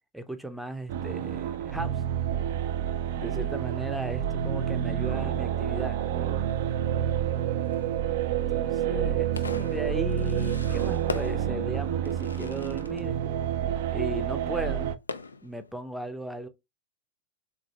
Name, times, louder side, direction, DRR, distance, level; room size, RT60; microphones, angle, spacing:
voice 1, 0.1-2.0 3.2-6.0 8.5-13.2 13.9-15.0 15.4-16.5, equal, ahead, 0.6 m, -37 dB
Fireworks, 0.7-15.8, left 4 dB, 80° left, 0.4 m, -44 dB
sound 1, 0.9-15.0, right 10 dB, 55° right, 0.4 m, -28 dB
3.8 x 3.2 x 2.3 m
figure-of-eight pair, 90°, 0 cm